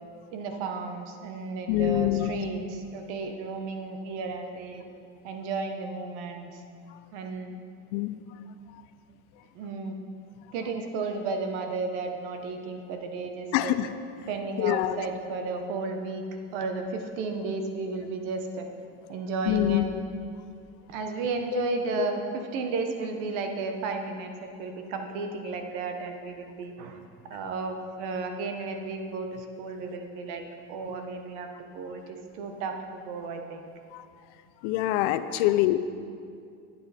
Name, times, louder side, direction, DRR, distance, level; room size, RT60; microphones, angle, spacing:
voice 1, 0.3-4.8 5.2-6.6 7.1-7.6 9.5-10.0 10.5-13.8 14.3-16.2 16.5-18.7 19.1-19.9 20.9-22.2 22.5-27.0 27.3-30.4 30.7-33.6, right 4 dB, 80° right, 5 dB, 1.3 m, -33 dB
voice 2, 1.7-2.4 7.9-8.2 13.5-13.9 14.6-15.0 19.5-19.8 21.5-21.6 22.0-22.1 33.9-34.1 34.6-35.8, left 15 dB, 80° left, 12 dB, 0.7 m, -25 dB
12.0 x 8.8 x 4.3 m, 2.3 s
supercardioid pair, 110°, 35 cm